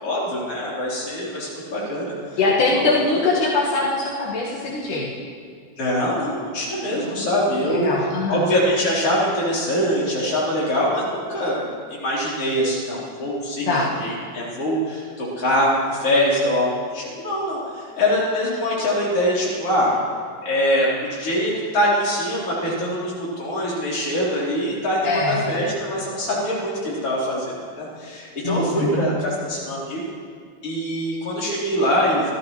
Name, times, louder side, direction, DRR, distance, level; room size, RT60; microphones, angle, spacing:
voice 1, 0.0-2.4 2.7-2.8 5.8-7.9 8.3-11.6 11.9-19.9 20.4-30.0 30.6-32.3, equal, 45° left, -7 dB, 5.1 m, -23 dB
voice 2, 2.4-5.1 6.9-7.3 7.6-8.5 13.7-13.9 25.0-25.4 28.4-29.1, left 3 dB, 75° left, -5 dB, 3.1 m, -22 dB
28.0 x 14.5 x 3.3 m, 2.1 s
omnidirectional pair, 3.6 m